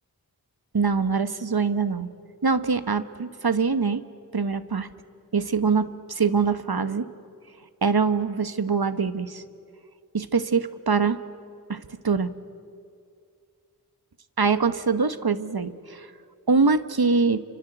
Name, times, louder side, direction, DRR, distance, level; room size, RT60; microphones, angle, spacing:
voice 1, 0.7-2.1 2.4-4.0 4.3-4.9 5.3-7.1 7.8-9.4 10.1-11.2 11.7-12.3 14.4-16.1 16.5-17.4, right 5 dB, 65° right, 12 dB, 1.3 m, -23 dB
29.0 x 25.5 x 7.9 m, 2.3 s
wide cardioid pair, 55°, 39 cm